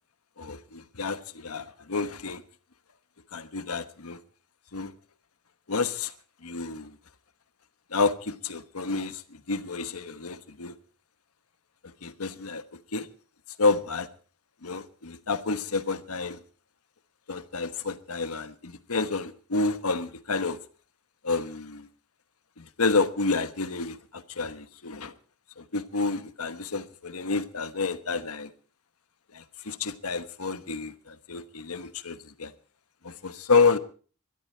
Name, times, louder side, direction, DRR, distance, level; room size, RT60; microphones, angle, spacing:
voice 1, 0.4-2.4 3.3-4.2 4.7-4.9 5.7-6.1 6.4-6.9 7.9-10.7 12.0-12.6 12.9-13.1 13.6-14.1 14.6-16.4 17.3-20.6 21.2-21.9 22.6-25.1 25.6-28.5 29.3-32.5 33.0-33.8, left 4 dB, 80° left, 1.2 m, -29 dB
21.5 x 13.0 x 4.4 m
head